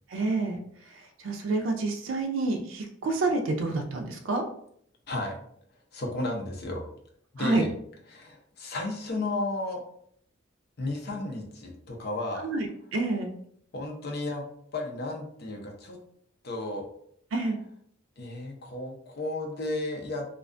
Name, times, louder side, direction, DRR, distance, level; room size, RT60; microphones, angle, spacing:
voice 1, 0.1-4.4 7.4-7.6 12.4-13.3 17.3-17.6, right 2 dB, 90° right, 4 dB, 0.4 m, -28 dB
voice 2, 5.1-5.4 5.9-6.9 7.3-7.7 8.1-9.8 10.8-12.4 13.7-14.4 14.7-16.0 16.4-16.8 18.2-20.3, left 2 dB, 55° left, 1 dB, 0.6 m, -33 dB
2.4 x 2.2 x 2.4 m, 0.65 s
head